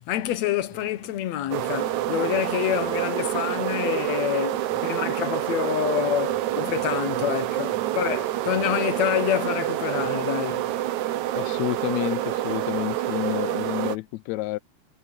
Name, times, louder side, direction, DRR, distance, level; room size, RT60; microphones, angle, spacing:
voice 1, 0.0-10.6, left 11 dB, 65° left, 2.1 m, -27 dB
sound 1, 0.7-11.1, right 9 dB, 55° right, 2.3 m, -51 dB
sound 2, 1.5-14.0, right 14 dB, 70° right, 2.3 m, -27 dB
voice 2, 11.3-14.6, left 19 dB, 85° left, 1.6 m, -29 dB
omnidirectional pair, 3.7 m